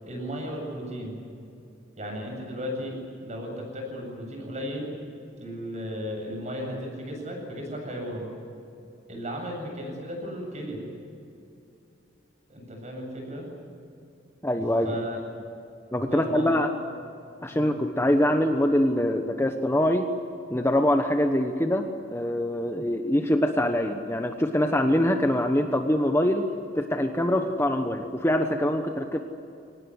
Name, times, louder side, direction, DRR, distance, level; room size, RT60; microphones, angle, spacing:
voice 1, 0.0-1.2 2.0-3.0 3.2-4.9 5.4-8.3 9.1-10.8 12.5-13.5 14.8-15.2 16.1-16.7 17.5-17.8 27.3-27.4, equal, 35° right, 1 dB, 8.0 m, -35 dB
voice 2, 14.4-15.0 15.9-16.7 17.4-20.1 20.5-21.9 22.1-26.4 26.8-29.2, left 1 dB, 15° left, 5 dB, 1.1 m, -24 dB
24.0 x 19.0 x 9.7 m, 2.6 s
head